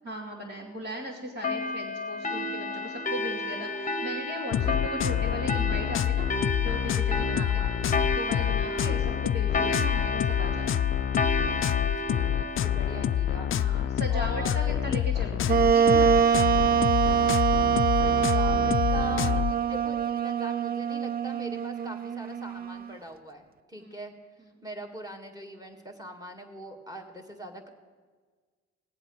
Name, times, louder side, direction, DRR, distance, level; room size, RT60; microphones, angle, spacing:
voice 1, 0.0-7.6 8.1-10.8 13.5-16.5 23.8-23.9, equal, 55° right, -5 dB, 2.8 m, -38 dB
sound 1, 1.4-14.5, left 2 dB, 25° left, 0.9 m, -32 dB
sound 2, 4.5-19.5, left 11 dB, 45° left, 0.4 m, -27 dB
voice 2, 7.3-7.8 8.7-9.1 12.0-15.3 18.0-24.1 24.6-27.7, equal, 10° right, 5 dB, 1.9 m, -42 dB
Wind instrument woodwind instrument, 15.5-22.9, right 8 dB, 30° right, 0.4 m, -24 dB
18.0 x 7.8 x 6.4 m, 1.5 s
cardioid pair, 90°, 30 cm